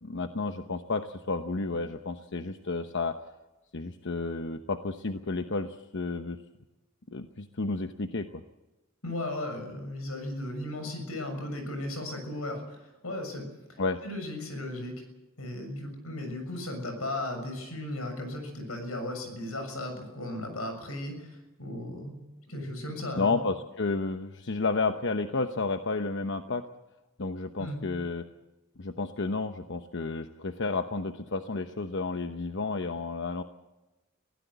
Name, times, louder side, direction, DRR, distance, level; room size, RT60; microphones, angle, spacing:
voice 1, 0.0-3.2 3.7-6.4 7.1-8.4 13.8-14.0 23.2-26.7 27.2-28.3 28.8-33.4, left 3 dB, 60° left, 8 dB, 1.0 m, -31 dB
voice 2, 9.0-15.0 15.4-22.2 22.5-23.4 27.6-27.8, left 1 dB, 85° left, 6 dB, 6.9 m, -36 dB
24.0 x 16.5 x 8.2 m, 1.1 s
head